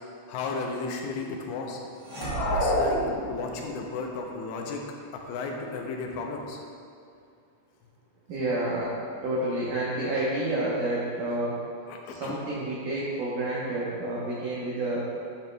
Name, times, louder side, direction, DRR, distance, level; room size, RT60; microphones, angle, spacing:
voice 1, 0.3-1.8 2.6-3.0 3.3-4.8 5.1-6.6 11.9-12.4, left 4 dB, 80° left, 1 dB, 2.9 m, -34 dB
sound 1, 2.0-4.0, right 4 dB, 50° right, 1.7 m, -35 dB
sound 2, 2.1-3.7, left 1 dB, 65° left, 2.4 m, -27 dB
voice 2, 8.3-8.9 9.2-11.5 12.1-15.0, right 1 dB, 85° right, -6 dB, 1.8 m, -29 dB
11.0 x 7.0 x 2.2 m, 2.4 s
omnidirectional pair, 5.2 m